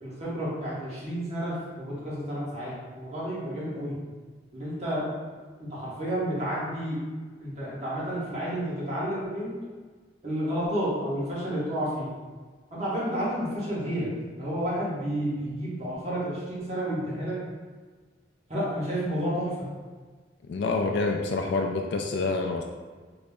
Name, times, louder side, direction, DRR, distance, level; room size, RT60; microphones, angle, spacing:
voice 1, 0.0-3.9 4.5-5.0 5.6-7.0 7.4-9.6 10.2-12.1 12.7-14.1 14.4-17.4 18.5-19.5, equal, 35° right, -8 dB, 1.1 m, -31 dB
voice 2, 20.5-22.6, left 3 dB, 70° left, 2 dB, 0.3 m, -27 dB
3.8 x 2.1 x 3.5 m, 1.4 s
head